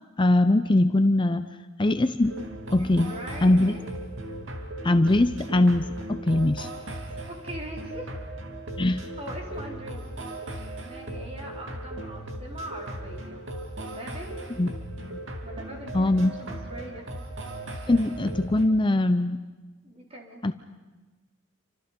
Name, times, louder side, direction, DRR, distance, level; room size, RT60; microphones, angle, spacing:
voice 1, 0.2-1.5 1.8-2.4 2.7-3.1 3.4-3.8 4.8-6.7 8.8-9.0 14.6-14.7 15.0-15.2 15.9-16.3 17.9-19.4 20.4-20.5, left 1 dB, 25° left, 10 dB, 0.6 m, -22 dB
sound 1, 2.2-18.7, right 1 dB, 70° right, 2.6 m, -37 dB
voice 2, 2.7-4.0 7.3-8.1 8.8-10.1 10.8-13.4 13.9-14.4 15.4-17.0 19.8-20.4, right 1 dB, 30° right, 0 dB, 4.4 m, -41 dB
29.0 x 25.5 x 5.3 m, 1.2 s
head